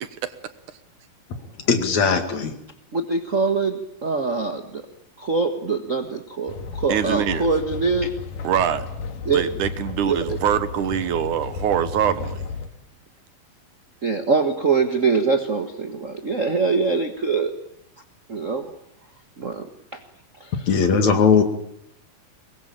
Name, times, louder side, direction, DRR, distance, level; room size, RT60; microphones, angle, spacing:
voice 1, 1.7-2.5 20.7-21.4, left 5 dB, 55° left, 7 dB, 3.4 m, -18 dB
voice 2, 2.9-4.8 5.2-8.1 9.2-9.4 10.1-10.4 14.0-17.5 18.3-18.7 19.4-19.7 19.9-20.0 20.4-20.5, right 4 dB, 50° right, 7 dB, 0.9 m, -23 dB
sound 1, 6.5-12.7, left 4 dB, 70° left, 3.5 m, -33 dB
voice 3, 6.9-7.5 8.4-8.9 9.3-12.4, right 9 dB, 70° right, 12 dB, 2.5 m, -23 dB
24.5 x 21.0 x 8.8 m, 0.75 s
omnidirectional pair, 3.9 m